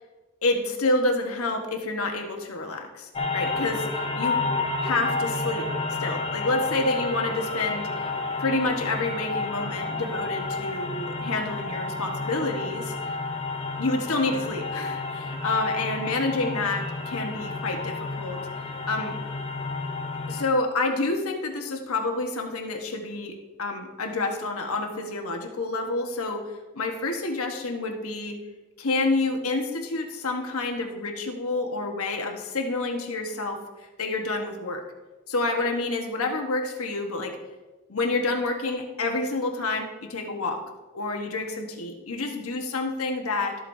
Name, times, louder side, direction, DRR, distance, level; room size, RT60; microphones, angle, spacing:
voice 1, 0.4-3.9 4.1-4.4 4.8-5.7 6.0-8.1 8.4-12.9 13.8-18.4 18.9-19.2 20.3-26.4 26.7-28.4 28.8-33.6 34.0-34.8 35.3-37.4 37.9-40.6 40.9-43.6, left 2 dB, 80° left, 3 dB, 1.2 m, -28 dB
sound 1, 3.1-20.4, left 3 dB, 25° left, 0.8 m, -31 dB
13.0 x 8.0 x 2.7 m, 1.2 s
head